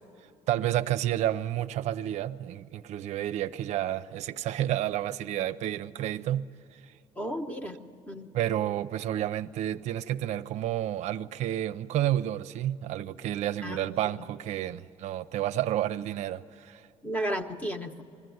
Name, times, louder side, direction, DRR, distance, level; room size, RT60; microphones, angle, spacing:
voice 1, 0.5-6.9 8.3-16.9, right 12 dB, 70° right, 0.5 m, -30 dB
voice 2, 7.2-7.8 8.1-8.3 13.6-13.8 17.0-18.0, equal, 10° left, 1.0 m, -33 dB
21.0 x 14.5 x 9.4 m
cardioid pair, 160°, 12 cm